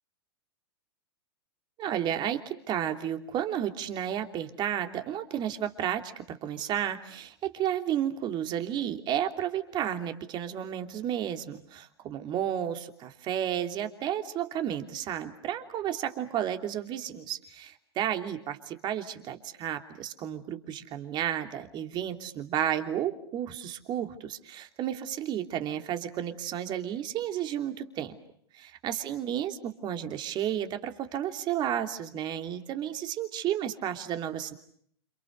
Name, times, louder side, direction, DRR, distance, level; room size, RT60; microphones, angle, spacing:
voice 1, 1.8-28.1 28.5-34.5, right 10 dB, 35° right, 6 dB, 3.0 m, -32 dB
29.5 x 27.5 x 6.7 m, 0.67 s
hypercardioid pair, 115°, 14 cm